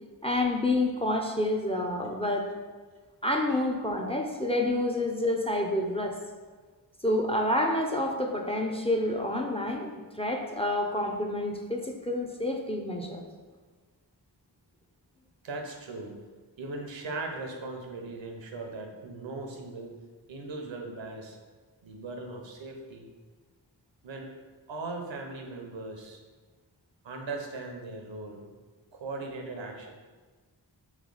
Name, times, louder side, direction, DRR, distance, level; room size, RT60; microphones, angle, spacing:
voice 1, 0.2-2.4 3.2-6.1 7.0-9.9 10.2-13.2, left 1 dB, 15° left, 2 dB, 0.3 m, -28 dB
voice 2, 15.4-16.1 16.6-19.9 20.3-21.4 21.8-23.1 24.0-24.3 24.7-26.2 27.0-28.5 28.9-29.9, right 3 dB, 90° right, 3 dB, 0.7 m, -39 dB
3.4 x 3.1 x 3.8 m, 1.4 s
wide cardioid pair, 60°, 44 cm